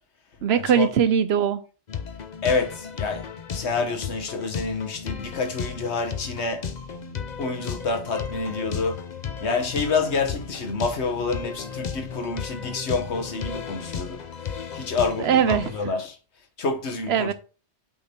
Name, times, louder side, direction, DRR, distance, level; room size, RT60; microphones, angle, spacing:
voice 1, 0.4-1.6 15.2-15.7 17.1-17.3, right 8 dB, 65° right, 0.8 m, -21 dB
sound 1, 1.9-15.8, left 6 dB, 45° left, 0.7 m, -34 dB
voice 2, 2.4-3.3 3.5-6.7 7.4-9.1 9.4-14.2 14.7-16.2 16.6-17.3, left 4 dB, 70° left, 1.4 m, -28 dB
8.6 x 3.7 x 4.3 m
omnidirectional pair, 1.2 m